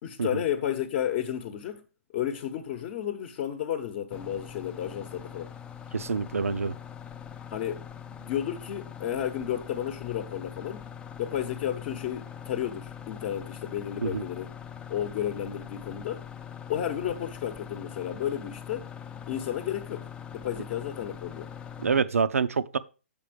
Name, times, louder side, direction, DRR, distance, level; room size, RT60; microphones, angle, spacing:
voice 1, 0.0-1.8 2.1-5.5 7.5-7.8 8.1-10.9 11.2-14.5 14.9-16.2 16.7-18.9 19.3-20.1 20.3-21.5, left 10 dB, 40° left, 0.9 m, -32 dB
sound 1, 4.1-22.0, left 8 dB, 10° left, 0.4 m, -42 dB
voice 2, 5.9-6.7 14.0-14.2 21.8-22.8, right 5 dB, 80° right, 0.6 m, -26 dB
7.4 x 5.2 x 5.0 m
hypercardioid pair, 130°, 8 cm